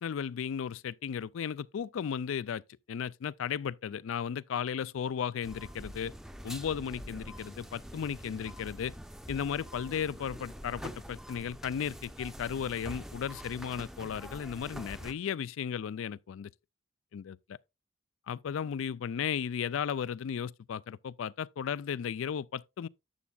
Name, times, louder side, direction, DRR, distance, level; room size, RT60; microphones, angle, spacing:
voice 1, 0.0-2.6 2.9-6.1 6.4-8.9 9.3-16.5 17.1-17.6 18.3-22.9, left 7 dB, 85° left, 0.4 m, -35 dB
sound 1, 5.4-15.1, equal, ahead, 0.5 m, -45 dB
11.0 x 7.2 x 2.3 m
head